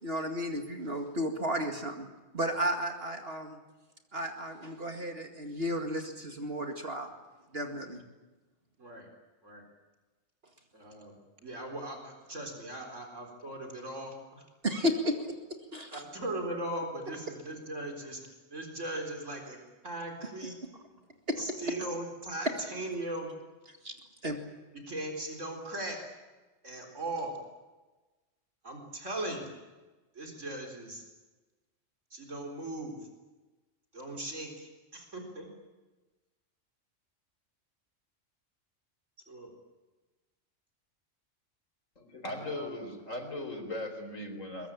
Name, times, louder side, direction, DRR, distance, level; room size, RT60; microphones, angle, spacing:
voice 1, 0.0-2.1 2.3-3.6 4.1-7.1 7.5-8.0 14.6-15.4 15.7-16.0 21.3-21.4 23.8-23.9 24.2-24.4, equal, 50° right, 4 dB, 2.4 m, -33 dB
voice 2, 10.7-11.2 11.4-14.4 15.9-18.2 18.5-19.6 19.8-20.5 21.4-23.3 24.7-26.0 26.6-27.4 28.6-29.5 30.1-31.0 32.1-33.0 33.9-35.5 39.3-39.5 42.4-42.7, right 1 dB, 70° right, 2 dB, 4.4 m, -38 dB
voice 3, 42.0-44.7, left 1 dB, 90° left, 5 dB, 4.5 m, -38 dB
23.0 x 22.5 x 8.8 m, 1.2 s
omnidirectional pair, 1.3 m